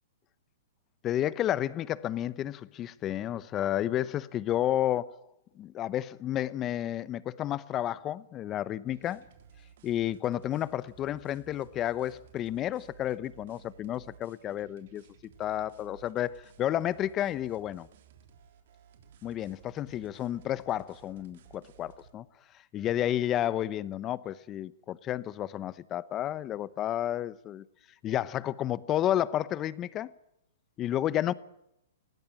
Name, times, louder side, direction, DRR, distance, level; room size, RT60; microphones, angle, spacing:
voice 1, 1.0-5.2 5.5-9.3 9.8-15.0 15.4-17.9 19.2-22.2 22.7-27.6 28.0-30.1 30.8-31.3, left 12 dB, 20° left, 0.8 m, -31 dB
sound 1, 8.9-22.1, right 8 dB, 60° right, 3.4 m, -57 dB
20.0 x 17.0 x 8.7 m
hypercardioid pair, 155°, 0 cm